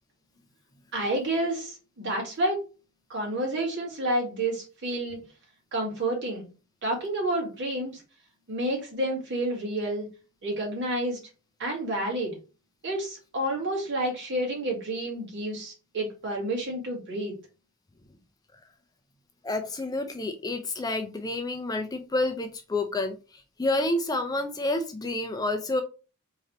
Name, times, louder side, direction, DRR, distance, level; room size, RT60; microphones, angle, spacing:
voice 1, 0.9-2.6 3.1-5.2 5.7-6.5 6.8-8.0 8.5-10.1 10.4-11.2 11.6-12.4 12.8-17.3, right 1 dB, 55° right, -2 dB, 2.1 m, -29 dB
voice 2, 19.4-25.8, left 2 dB, 15° left, 7 dB, 0.4 m, -29 dB
3.8 x 3.2 x 4.1 m, 0.33 s
head